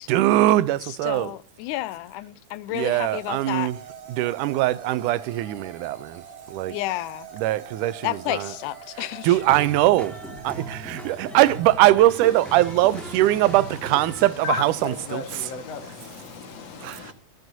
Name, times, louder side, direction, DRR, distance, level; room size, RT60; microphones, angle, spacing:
voice 1, 0.1-1.3 2.7-3.8 4.1-6.2 6.5-6.8 7.3-8.5 9.0-10.2 10.4-15.5 16.8-17.1, right 15 dB, 90° right, 2.2 m, -22 dB
voice 2, 0.8-3.7 6.7-7.3 8.0-9.4, left 16 dB, 90° left, 2.2 m, -31 dB
sound 1, 2.8-11.8, right 6 dB, 45° right, 2.7 m, -43 dB
sound 2, 9.3-14.3, right 2 dB, ahead, 1.0 m, -38 dB
voice 3, 13.1-13.5 14.1-17.1, left 5 dB, 60° left, 2.5 m, -34 dB
23.0 x 7.8 x 2.7 m
omnidirectional pair, 3.5 m